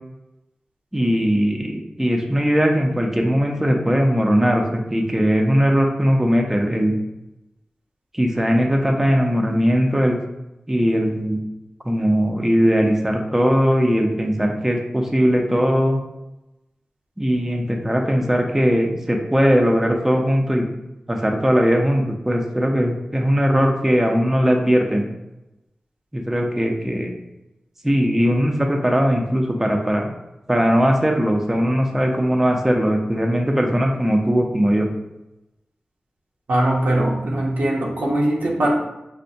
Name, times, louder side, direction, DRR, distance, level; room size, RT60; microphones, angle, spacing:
voice 1, 0.9-6.9 8.1-10.2 10.7-11.4 11.8-16.0 17.2-20.6 21.1-25.1 26.1-27.1 27.8-30.1 30.5-34.9, equal, 10° right, 1 dB, 0.5 m, -19 dB
voice 2, 36.5-38.7, right 1 dB, 85° right, -3 dB, 0.7 m, -20 dB
4.3 x 2.1 x 2.6 m, 0.92 s
cardioid pair, 45°, 3 cm